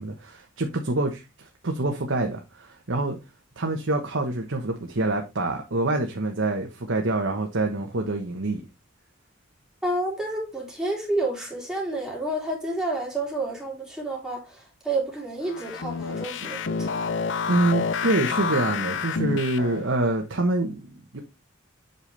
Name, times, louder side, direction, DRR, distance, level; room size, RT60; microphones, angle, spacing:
voice 1, 0.0-3.2 3.6-8.6 17.5-21.2, right 2 dB, 75° right, 1.2 m, -26 dB
voice 2, 9.8-17.1, right 2 dB, 5° right, 3.6 m, -30 dB
sound 1, 15.5-19.9, left 5 dB, 65° left, 0.6 m, -29 dB
8.0 x 5.6 x 3.4 m
head